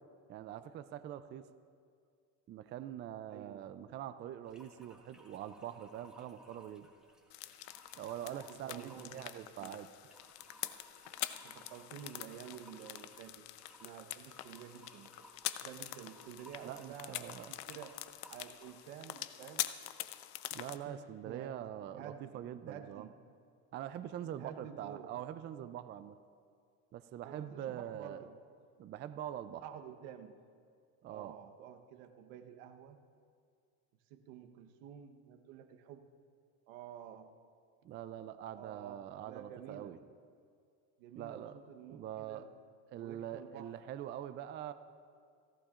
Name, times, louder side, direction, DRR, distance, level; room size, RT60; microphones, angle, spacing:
voice 1, 0.3-1.5 2.5-6.9 7.9-9.9 16.6-17.5 20.5-23.1 23.7-26.2 26.9-28.2 28.8-29.6 31.0-31.3 37.8-40.0 41.2-41.5 41.9-42.4 42.9-44.7, right 11 dB, 30° right, 11 dB, 0.4 m, -44 dB
voice 2, 3.3-3.7 8.2-9.8 11.4-13.5 13.8-15.1 15.6-18.0 18.3-19.8 20.8-23.1 24.4-25.1 27.2-28.4 29.6-30.4 31.1-33.0 34.1-36.1 36.7-37.3 38.5-40.0 41.0-42.5 43.0-43.7, right 9 dB, 80° right, 6 dB, 1.1 m, -50 dB
sound 1, 4.4-18.9, equal, ahead, 1.5 m, -61 dB
sound 2, 7.3-20.8, left 15 dB, 65° left, 0.7 m, -45 dB
29.0 x 11.5 x 2.5 m, 2.2 s
supercardioid pair, 130°, 40 cm